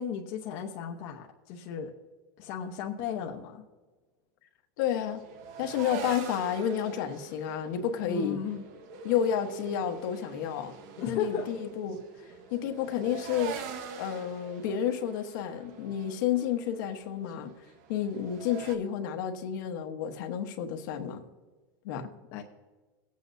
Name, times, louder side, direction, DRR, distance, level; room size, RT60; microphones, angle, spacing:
voice 1, 0.0-1.9 2.4-3.6 8.0-8.6 11.0-11.5 12.5-12.6 22.3-22.4, left 8 dB, 50° left, 0 dB, 0.9 m, -35 dB
voice 2, 4.8-5.2 5.6-8.4 9.0-10.7 11.1-12.0 12.5-13.5 14.0-17.5 17.9-21.2 21.8-22.1, left 9 dB, 65° left, 4 dB, 1.2 m, -30 dB
sound 1, 4.9-18.8, right 6 dB, 60° right, 1.3 m, -44 dB
19.0 x 8.4 x 2.7 m, 1.3 s
supercardioid pair, 145°, 11 cm